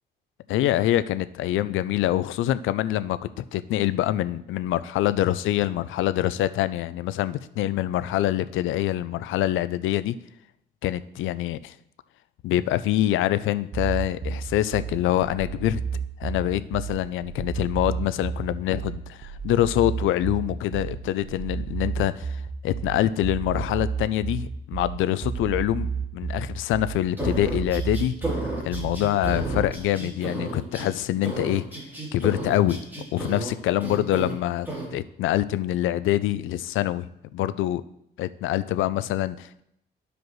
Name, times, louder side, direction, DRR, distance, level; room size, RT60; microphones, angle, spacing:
voice 1, 0.5-10.2 10.8-11.7 12.4-15.8 16.2-28.2 28.6-31.6 32.1-32.8 33.1-37.8 38.2-39.6, left 13 dB, 80° left, 15 dB, 0.4 m, -25 dB
sound 1, 13.7-29.7, right 6 dB, 45° right, 0.9 m, -31 dB
sound 2, 27.2-30.9 31.2-33.5 33.8-34.3 34.7-34.9, right 1 dB, 10° right, 3.2 m, -33 dB
13.5 x 5.0 x 3.1 m, 0.77 s
cardioid pair, 90°, 20 cm